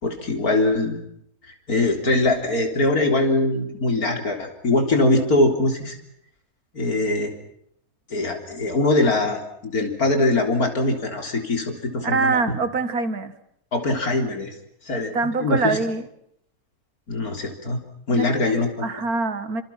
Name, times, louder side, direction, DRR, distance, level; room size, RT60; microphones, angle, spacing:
voice 1, 0.0-1.0 1.5-6.0 6.7-7.3 8.1-12.6 13.7-14.5 14.8-15.8 17.1-17.8 18.1-18.9, left 2 dB, 85° left, 4 dB, 4.2 m, -22 dB
voice 2, 12.0-13.3 15.1-16.1 18.1-18.5 18.8-19.6, right 4 dB, 80° right, 11 dB, 2.3 m, -24 dB
27.5 x 27.0 x 5.9 m, 0.70 s
omnidirectional pair, 1.5 m